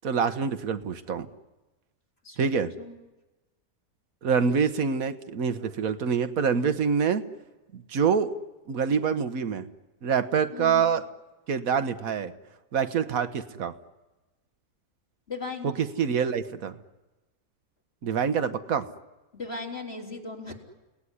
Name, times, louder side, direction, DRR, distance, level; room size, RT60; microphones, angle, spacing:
voice 1, 0.0-1.3 2.4-2.7 4.2-7.2 7.7-8.3 8.7-9.7 10.0-11.0 11.5-12.3 12.7-13.8 15.6-16.7 18.0-18.9, right 6 dB, 65° right, 11 dB, 1.5 m, -26 dB
voice 2, 2.2-3.0 10.5-10.9 15.3-15.7 19.3-20.5, left 3 dB, 40° left, 1 dB, 3.8 m, -37 dB
30.0 x 18.5 x 9.9 m, 1.1 s
omnidirectional pair, 1.6 m